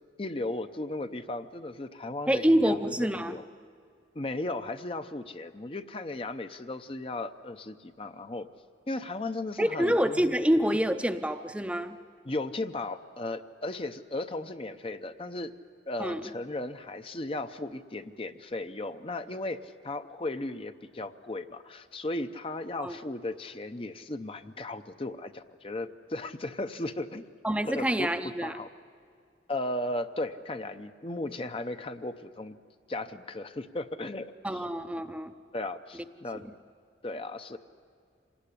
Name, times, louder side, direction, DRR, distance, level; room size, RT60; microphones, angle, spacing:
voice 1, 0.2-3.4 4.1-8.5 8.9-10.3 12.2-15.5 15.9-19.6 19.8-27.2 27.7-28.1 28.4-28.7 29.5-32.6 32.9-34.6 35.5-36.5 37.0-37.6, left 2 dB, 30° left, 9 dB, 0.6 m, -36 dB
voice 2, 2.3-3.4 9.6-12.0 16.0-16.2 22.8-23.0 27.4-28.6 34.4-35.3, equal, 5° right, 8 dB, 0.6 m, -26 dB
26.5 x 18.5 x 10.0 m, 2.3 s
head